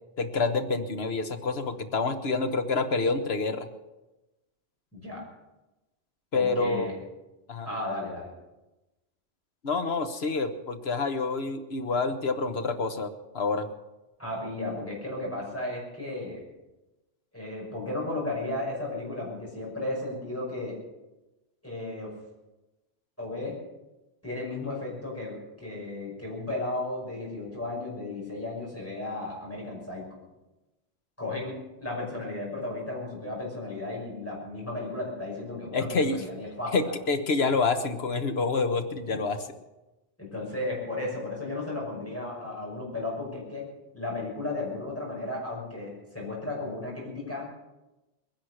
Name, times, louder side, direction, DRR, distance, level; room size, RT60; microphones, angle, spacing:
voice 1, 0.2-3.7 6.3-6.9 7.5-7.7 9.6-13.7 35.7-36.2 36.7-39.5, left 4 dB, 70° left, 7 dB, 1.4 m, -27 dB
voice 2, 4.9-5.2 6.3-6.9 7.6-8.3 14.2-16.4 17.3-20.8 21.6-22.1 23.2-23.6 24.2-30.1 31.2-36.7 40.2-43.7 43.9-47.5, left 2 dB, 15° left, -3 dB, 5.9 m, -34 dB
21.0 x 10.5 x 6.5 m, 1.0 s
omnidirectional pair, 1.1 m